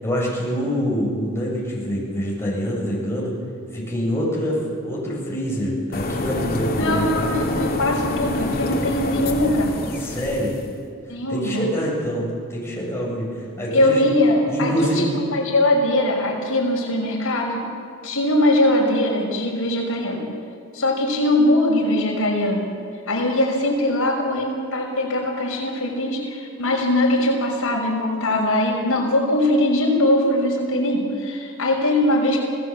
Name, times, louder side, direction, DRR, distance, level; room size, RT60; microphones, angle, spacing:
voice 1, 0.0-3.3 3.7-4.6 4.8-7.4 10.0-10.5 11.3-14.1 14.5-15.1, equal, 10° left, -4 dB, 7.3 m, -25 dB
sound 1, 5.9-10.7, left 1 dB, 45° left, 2.3 m, -26 dB
voice 2, 6.8-9.7 11.1-11.6 13.7-17.6 18.0-20.2 20.7-22.7 23.1-32.4, left 1 dB, 70° left, -1 dB, 5.9 m, -21 dB
26.5 x 18.0 x 7.7 m, 2.3 s
head